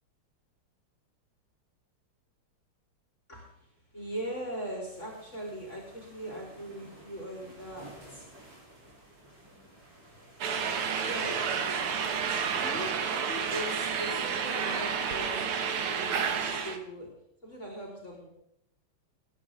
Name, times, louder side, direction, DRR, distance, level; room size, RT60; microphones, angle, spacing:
voice 1, 3.3-8.3 10.9-11.8 12.6-15.5 15.9-17.1 17.4-18.3, equal, 30° left, -3 dB, 4.2 m, -40 dB
sound 1, 4.9-12.9, right 1 dB, 55° right, 4.4 m, -53 dB
sound 2, 10.4-16.8, right 6 dB, 90° right, 2.2 m, -30 dB
21.0 x 10.5 x 3.6 m, 0.73 s
omnidirectional pair, 2.4 m